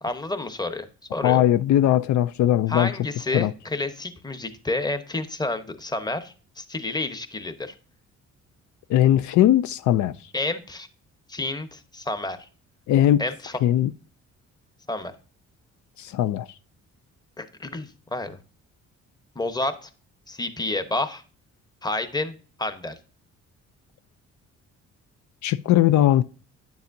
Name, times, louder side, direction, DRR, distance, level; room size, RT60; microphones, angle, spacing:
voice 1, 0.0-1.4 2.7-7.7 10.3-10.9 11.3-12.4 13.2-13.6 14.9-15.1 17.4-18.4 19.3-19.9 20.3-21.2 21.8-23.0, left 2 dB, 15° left, 0.9 m, -30 dB
voice 2, 1.2-2.9 3.3-3.5 8.9-10.1 12.9-13.2 13.6-13.9 16.0-16.5 25.4-26.2, left 12 dB, 70° left, 0.4 m, -19 dB
9.5 x 7.1 x 2.6 m
cardioid pair, 90°, 30 cm